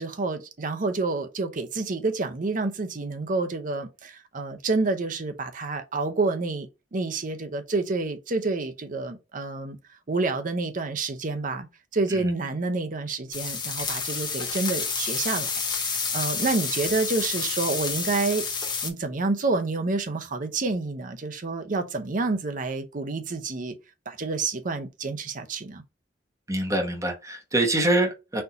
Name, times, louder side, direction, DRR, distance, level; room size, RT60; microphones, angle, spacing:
voice 1, 0.0-9.8 10.1-11.7 11.9-18.5 18.8-23.7 24.1-25.8, right 3 dB, 45° right, 0.7 m, -28 dB
sound 1, 13.3-18.9, left 5 dB, 25° left, 0.7 m, -29 dB
voice 2, 26.5-28.4, right 1 dB, 15° right, 1.0 m, -25 dB
4.4 x 2.7 x 3.9 m
head